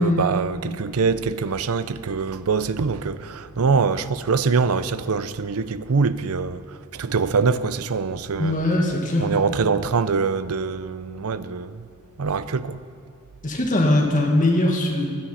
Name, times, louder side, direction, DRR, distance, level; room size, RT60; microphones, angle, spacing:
voice 1, 0.0-8.6 9.2-11.9 12.2-12.9, right 5 dB, 75° right, 0.6 m, -24 dB
voice 2, 8.4-9.3 13.4-15.1, left 1 dB, 35° left, 2.0 m, -20 dB
16.0 x 12.0 x 5.6 m
head